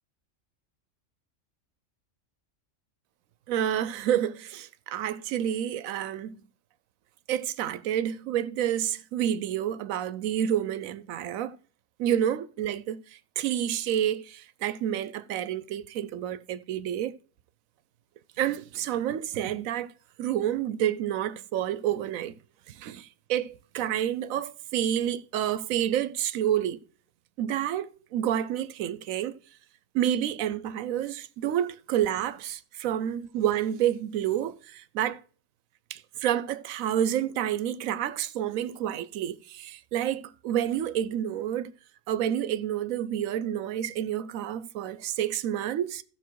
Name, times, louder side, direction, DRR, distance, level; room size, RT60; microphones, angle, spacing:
voice 1, 3.5-6.4 7.3-11.5 12.0-13.0 13.4-17.1 18.4-19.9 20.2-22.3 22.7-26.8 27.4-29.4 29.9-35.2 35.9-41.7 42.1-46.0, right 10 dB, 85° right, 1.1 m, -29 dB
14.5 x 5.9 x 4.6 m
omnidirectional pair, 1.4 m